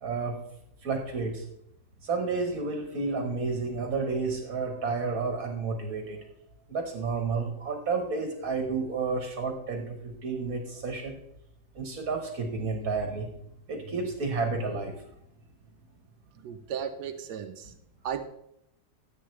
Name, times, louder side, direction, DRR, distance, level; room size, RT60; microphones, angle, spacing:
voice 1, 0.0-0.3 0.8-1.4 2.0-6.2 6.7-11.2 11.8-13.3 13.7-15.0, right 4 dB, 60° right, 3 dB, 1.8 m, -31 dB
voice 2, 16.4-17.7 18.0-18.2, right 8 dB, 90° right, 7 dB, 1.3 m, -35 dB
14.5 x 7.9 x 3.3 m, 0.78 s
omnidirectional pair, 1.7 m